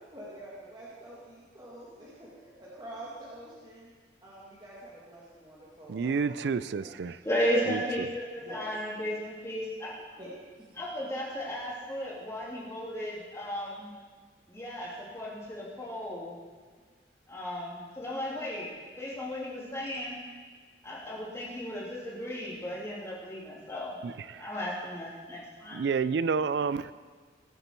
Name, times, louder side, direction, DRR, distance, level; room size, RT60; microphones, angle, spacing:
voice 1, 0.1-3.9 4.2-6.9 8.4-8.7 10.2-10.3 10.6-10.8, right 1 dB, 25° right, -7 dB, 1.9 m, -47 dB
voice 2, 5.9-7.2 7.5-8.1 24.0-24.5 25.7-26.9, right 5 dB, 65° right, 16 dB, 0.3 m, -30 dB
voice 3, 7.2-10.0 10.8-13.9 14.5-16.4 17.3-20.2 20.8-24.0 24.4-25.8, equal, 15° left, -6 dB, 2.8 m, -35 dB
18.0 x 6.8 x 4.5 m, 1.5 s
head